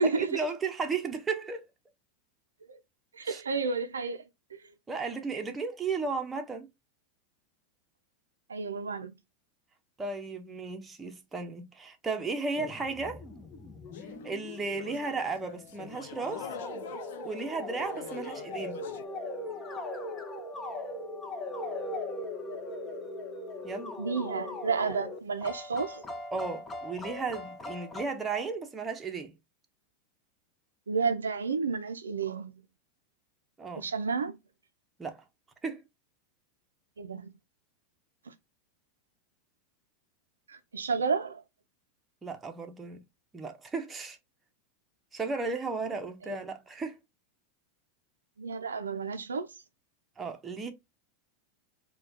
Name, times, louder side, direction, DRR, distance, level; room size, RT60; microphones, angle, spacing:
voice 1, 0.0-1.6 3.2-3.4 4.9-6.7 10.0-13.2 14.2-16.5 17.2-18.8 23.6-24.0 26.3-29.3 33.6-33.9 35.0-35.2 35.6-35.8 42.2-43.0 43.3-44.2 45.1-47.0 50.2-50.7, right 4 dB, 20° right, 0.8 m, -34 dB
voice 2, 3.1-4.2 4.5-4.6 8.5-9.1 24.0-26.0 30.9-32.5 33.8-34.4 37.0-37.3 38.3-38.4 40.5-41.4 46.3-46.4 48.4-49.5, right 4 dB, 85° right, 0.5 m, -31 dB
sound 1, 12.6-28.1, left 2 dB, 20° left, 0.8 m, -40 dB
sound 2, 13.9-19.0, left 8 dB, 65° left, 0.6 m, -46 dB
4.1 x 2.3 x 2.7 m
hypercardioid pair, 90°, 0 cm